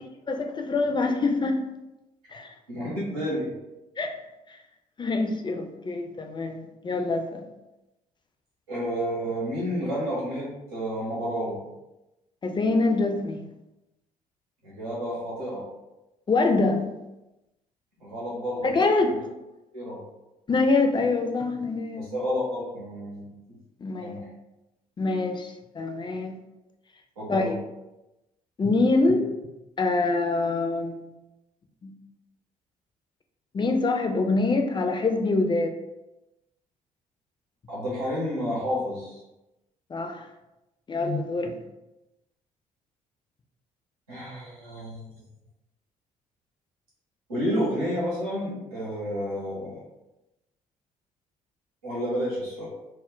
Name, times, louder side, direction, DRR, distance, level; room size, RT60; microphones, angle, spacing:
voice 1, 0.3-1.6 2.3-2.5 4.0-4.1 4.5-4.6 5.0-7.4 12.4-13.4 16.3-16.9 18.6-19.2 20.5-22.1 23.8-24.2 25.0-26.4 27.3-27.6 28.6-29.3 29.8-31.1 31.8-31.9 33.5-35.7 39.9-40.3 40.9-41.5, left 3 dB, 25° left, 4 dB, 0.4 m, -25 dB
voice 2, 2.7-3.5 8.7-11.6 14.6-15.6 18.0-18.7 19.7-20.0 22.0-23.3 24.0-24.3 27.2-27.5 37.7-39.2 44.1-45.1 47.3-49.8 51.8-52.7, equal, 90° right, -7 dB, 0.8 m, -30 dB
2.2 x 2.0 x 3.7 m, 0.96 s
hypercardioid pair, 50°, 18 cm